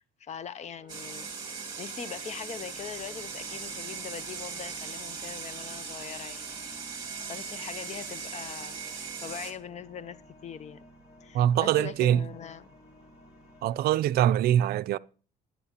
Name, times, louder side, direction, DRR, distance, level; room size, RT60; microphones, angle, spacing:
voice 1, 0.0-6.6 6.9-10.8 11.2-12.7, left 7 dB, 40° left, 0.7 m, -42 dB
sound 1, 0.7-14.4, left 2 dB, 60° left, 3.6 m, -57 dB
sound 2, 0.9-9.5, right 5 dB, 25° right, 2.4 m, -39 dB
sound 3, 2.6-14.0, right 2 dB, 5° right, 5.2 m, -60 dB
voice 2, 11.3-12.2 13.6-15.0, right 11 dB, 65° right, 0.4 m, -23 dB
21.0 x 8.5 x 2.9 m
cardioid pair, 110°, 17 cm